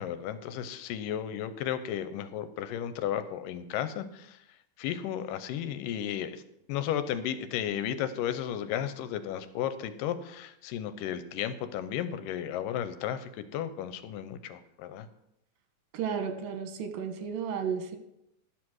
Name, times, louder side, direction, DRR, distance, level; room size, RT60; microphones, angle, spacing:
voice 1, 0.0-4.4 4.8-6.4 6.7-15.1, left 10 dB, 85° left, 12 dB, 2.3 m, -34 dB
voice 2, 15.9-18.0, right 7 dB, 85° right, 7 dB, 2.7 m, -33 dB
11.5 x 6.2 x 6.3 m, 0.81 s
omnidirectional pair, 3.8 m